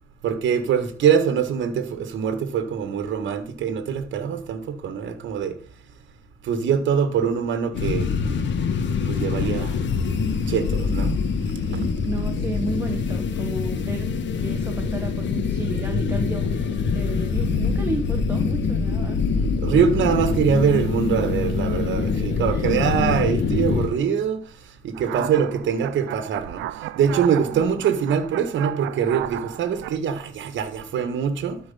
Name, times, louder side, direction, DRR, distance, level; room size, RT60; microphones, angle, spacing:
voice 1, 0.2-5.5 6.5-8.1 9.1-9.7 10.5-11.1 11.7-11.8 19.6-24.4 24.8-26.6 27.0-31.6, right 7 dB, 70° right, 1.5 m, -23 dB
sound 1, 7.7-23.9, left 5 dB, 65° left, 1.6 m, -24 dB
voice 2, 11.7-14.1 14.4-19.5 22.0-22.2 22.5-22.7 23.3-23.4 27.5-27.6, right 2 dB, 10° right, 1.5 m, -32 dB
sound 2, 24.9-30.0, right 14 dB, 85° right, 0.5 m, -34 dB
12.5 x 4.7 x 5.5 m
cardioid pair, 90°, 20 cm